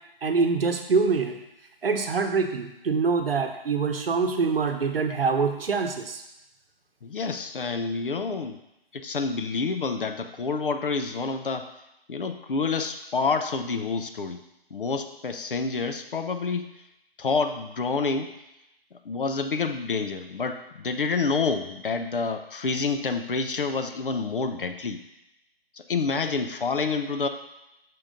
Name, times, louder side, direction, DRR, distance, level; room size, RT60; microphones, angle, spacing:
voice 1, 0.2-1.4 1.8-6.2, right 4 dB, 65° right, 6 dB, 0.9 m, -25 dB
voice 2, 7.0-8.6 8.9-11.7 12.1-14.4 14.7-16.7 17.2-18.4 18.9-25.0 25.8-27.3, left 4 dB, 60° left, 8 dB, 0.6 m, -28 dB
6.0 x 3.8 x 5.1 m, 0.87 s
hypercardioid pair, 175°, 31 cm